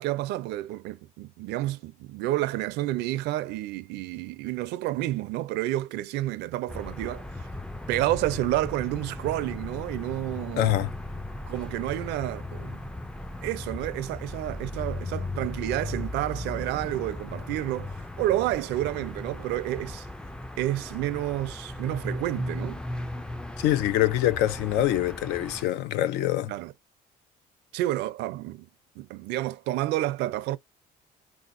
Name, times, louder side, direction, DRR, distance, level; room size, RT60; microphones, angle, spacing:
voice 1, 0.0-7.2 7.9-10.8 11.5-12.8 13.4-20.1 20.6-22.8 26.5-26.7 27.7-28.7 29.0-30.6, right 15 dB, 90° right, 0.5 m, -30 dB
sound 1, 6.7-25.7, left 1 dB, 5° left, 0.3 m, -37 dB
voice 2, 10.6-10.9 23.6-26.5, left 13 dB, 90° left, 0.5 m, -24 dB
3.7 x 2.8 x 2.5 m
cardioid pair, 110°, 17 cm